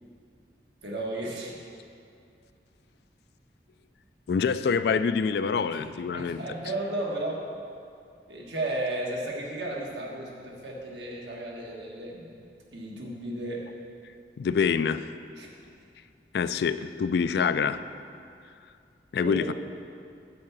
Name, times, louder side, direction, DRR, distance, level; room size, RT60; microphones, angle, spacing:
voice 1, 0.8-1.6 5.7-5.9 6.1-7.4 8.3-12.3 12.7-13.6 15.4-15.5 19.2-19.5, right 1 dB, 85° right, -2 dB, 1.6 m, -34 dB
voice 2, 4.3-6.4 14.4-15.0 16.3-17.8 19.1-19.5, left 6 dB, 70° left, 12 dB, 0.3 m, -26 dB
9.1 x 4.7 x 7.2 m, 2.4 s
head